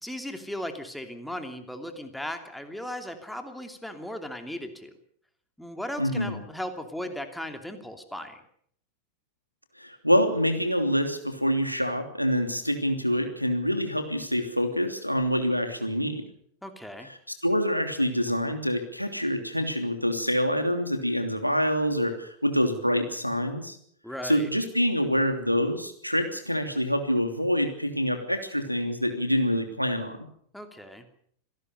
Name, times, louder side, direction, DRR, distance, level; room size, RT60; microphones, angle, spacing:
voice 1, 0.0-4.9 5.6-8.4 16.6-17.1 24.0-24.5 30.5-31.1, equal, ahead, 6 dB, 2.9 m, -37 dB
voice 2, 6.0-6.4 9.8-16.2 17.0-17.1 17.4-23.8 24.2-30.2, equal, 90° left, 6 dB, 3.0 m, -26 dB
26.0 x 18.0 x 6.8 m, 0.65 s
figure-of-eight pair, 90°, 0 cm